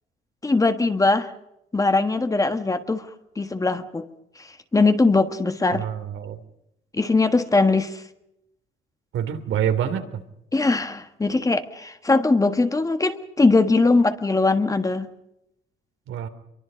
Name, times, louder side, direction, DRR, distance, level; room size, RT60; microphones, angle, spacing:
voice 1, 0.4-1.3 1.7-3.1 3.4-4.1 4.4-5.8 6.9-8.0 10.5-15.1, left 3 dB, 15° left, 9 dB, 1.5 m, -21 dB
voice 2, 5.7-6.4 9.1-10.1 16.1-16.3, right 9 dB, 80° right, 8 dB, 3.0 m, -26 dB
27.0 x 23.0 x 5.2 m, 0.83 s
cardioid pair, 135°, 20 cm